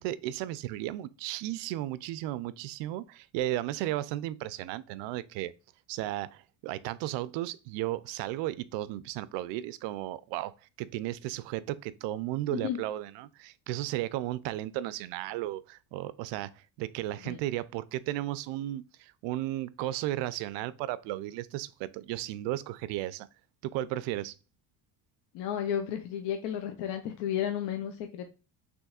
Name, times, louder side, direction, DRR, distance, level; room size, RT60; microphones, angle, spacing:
voice 1, 0.0-5.5 5.9-10.5 10.8-23.3 23.6-24.3, right 14 dB, 90° right, 0.6 m, -34 dB
voice 2, 25.3-28.3, left 9 dB, 80° left, 0.8 m, -33 dB
6.2 x 3.1 x 2.3 m
cardioid pair, 165°, 42 cm